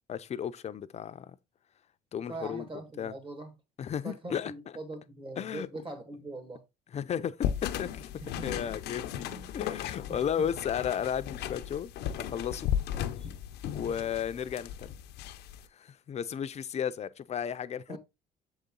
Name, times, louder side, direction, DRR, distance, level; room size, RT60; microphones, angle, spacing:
voice 1, 0.1-1.4 2.1-2.7 3.0-3.1 3.8-4.5 5.4-5.7 6.9-8.1 8.4-11.9 12.2-12.7 13.7-15.0 15.7-18.0, left 8 dB, 40° left, 0.6 m, -34 dB
voice 2, 2.3-3.5 4.0-6.6 8.2-8.8 9.3-9.5 10.1-10.5 13.1-13.4 17.9-18.0, right 2 dB, 30° right, 1.9 m, -42 dB
sound 1, 7.4-15.6, left 10 dB, 80° left, 0.6 m, -36 dB
7.2 x 4.0 x 3.7 m
cardioid pair, 110°, 17 cm